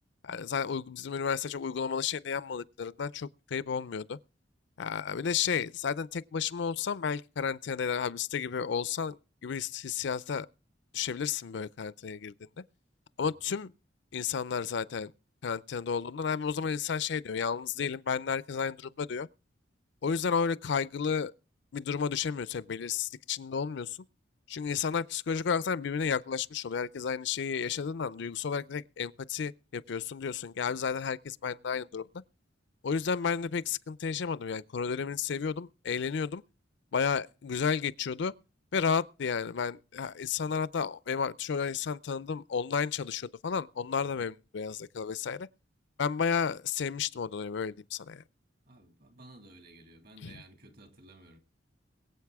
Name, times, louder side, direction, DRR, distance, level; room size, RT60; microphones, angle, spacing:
voice 1, 0.2-4.2 4.8-10.5 10.9-12.3 13.2-13.7 14.1-15.1 15.4-19.3 20.0-21.3 21.7-24.0 24.5-32.1 32.8-36.4 36.9-38.3 38.7-45.5 46.0-48.2 50.2-50.4, left 6 dB, 65° left, 0.5 m, -32 dB
voice 2, 48.7-51.4, right 2 dB, 55° right, 2.4 m, -54 dB
22.5 x 8.0 x 3.5 m
head